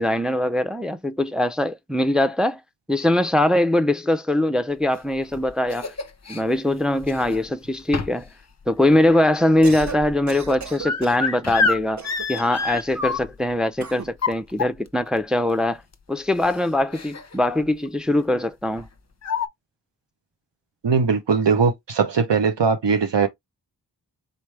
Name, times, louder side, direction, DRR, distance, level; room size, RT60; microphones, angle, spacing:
voice 1, 0.0-2.6 2.9-5.9 6.3-8.3 8.7-12.0 12.3-15.8 16.1-18.9, left 1 dB, ahead, 0.5 m, -22 dB
sound 1, 5.0-6.4 7.0-7.5 7.9-8.3 8.6-13.5 14.0-15.1 15.9-16.0 16.4-16.5 16.9-17.4 17.6-17.9 18.8-18.9 19.2-19.5, left 4 dB, 40° left, 0.7 m, -28 dB
Cough, 9.5-10.0 10.3-11.3 12.0-12.6 13.8-14.1, right 6 dB, 40° right, 0.7 m, -36 dB
voice 2, 20.8-23.3, right 5 dB, 80° right, 0.8 m, -20 dB
4.0 x 3.2 x 3.3 m
wide cardioid pair, 40°, 42 cm